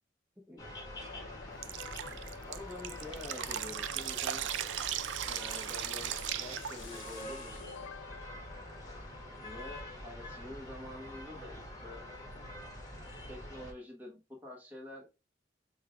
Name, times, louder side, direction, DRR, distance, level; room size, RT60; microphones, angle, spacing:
sound 1, 0.6-13.7, left 1 dB, 20° left, 1.2 m, -46 dB
sound 2, 1.0-9.6, left 7 dB, 80° left, 0.3 m, -51 dB
Drip, 1.6-7.2, right 11 dB, 75° right, 0.3 m, -37 dB
voice 1, 2.5-4.5 5.2-7.7 9.4-12.5 13.3-15.1, left 1 dB, 10° right, -4 dB, 1.0 m, -47 dB
5.5 x 2.4 x 3.4 m, 0.27 s
head